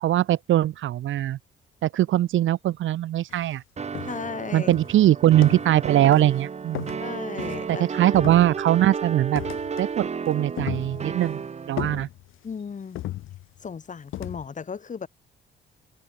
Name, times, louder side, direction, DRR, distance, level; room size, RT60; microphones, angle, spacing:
voice 1, 0.0-1.4 1.8-3.6 4.5-6.9 7.7-9.4 9.8-11.4 11.7-12.1, right 13 dB, 75° right, 2.1 m, -21 dB
sound 1, 3.3-3.5 3.9-4.4 4.7-5.8 6.0-6.4 6.7-7.8 8.1-8.8 9.4-10.0 10.3-11.3 11.8-12.5 13.0-13.7 14.1-14.5, left 15 dB, 85° left, 4.1 m, -36 dB
sound 2, 3.8-12.0, right 6 dB, 35° right, 1.2 m, -33 dB
voice 2, 4.0-4.7 7.0-7.9 12.4-13.0 13.6-15.1, left 6 dB, 40° left, 2.5 m, -35 dB
cardioid pair, 90°, 20 cm